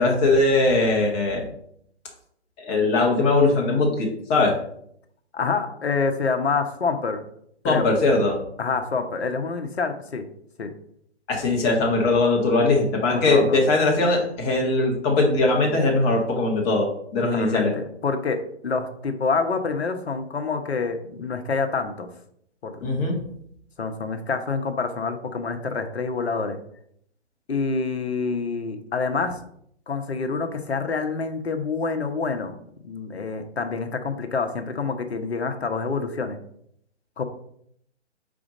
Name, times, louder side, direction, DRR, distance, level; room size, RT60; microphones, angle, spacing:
voice 1, 0.0-1.4 2.6-4.6 7.6-8.4 11.3-17.7 22.8-23.2, left 2 dB, 20° left, -1 dB, 1.5 m, -20 dB
voice 2, 5.3-7.2 7.6-7.9 8.6-10.3 10.6-10.7 13.1-13.6 17.3-22.1 22.6-22.8 23.8-26.6 27.5-29.4 29.9-32.6 32.8-36.4 37.2-37.3, left 4 dB, 65° left, 6 dB, 1.1 m, -27 dB
5.0 x 4.4 x 5.1 m, 0.69 s
figure-of-eight pair, 130°, 34 cm